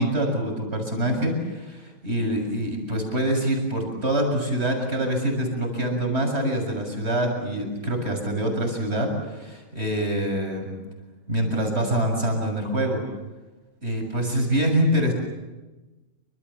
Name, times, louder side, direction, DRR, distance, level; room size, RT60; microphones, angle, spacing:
voice 1, 0.0-10.7 11.3-13.0 13.8-15.1, right 1 dB, 45° right, 2 dB, 7.5 m, -25 dB
28.5 x 26.5 x 7.2 m, 1.1 s
omnidirectional pair, 1.5 m